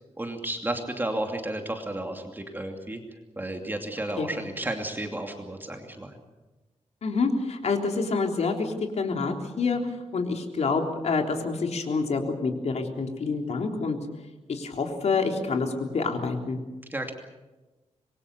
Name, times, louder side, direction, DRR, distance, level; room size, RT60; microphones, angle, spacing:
voice 1, 0.2-3.0 3.4-6.2 16.9-17.1, right 1 dB, 15° right, 4 dB, 2.7 m, -32 dB
voice 2, 7.0-9.8 10.1-14.0 14.5-16.6, left 4 dB, 65° left, 4 dB, 3.6 m, -27 dB
26.0 x 22.5 x 7.0 m, 1.2 s
wide cardioid pair, 120°, 12 cm